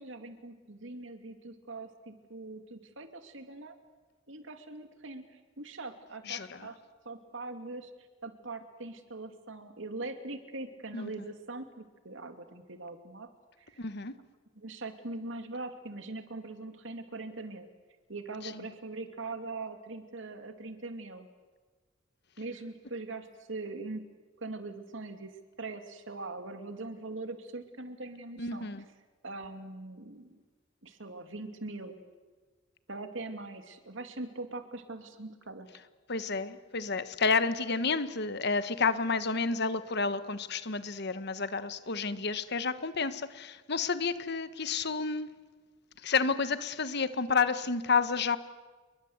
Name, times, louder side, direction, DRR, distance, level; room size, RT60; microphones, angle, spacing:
voice 1, 0.0-3.8 4.3-6.7 7.0-7.9 8.2-13.3 13.6-13.8 14.6-17.7 18.1-21.3 22.4-24.0 24.4-25.3 25.6-28.7 29.2-30.4 30.8-32.0 32.9-35.7, right 2 dB, 70° right, 2.7 m, -42 dB
voice 2, 6.3-6.7 10.9-11.1 13.8-14.1 18.4-18.5 28.4-28.8 36.1-45.3 46.0-48.4, left 4 dB, 55° left, 1.3 m, -30 dB
28.5 x 22.5 x 8.1 m
head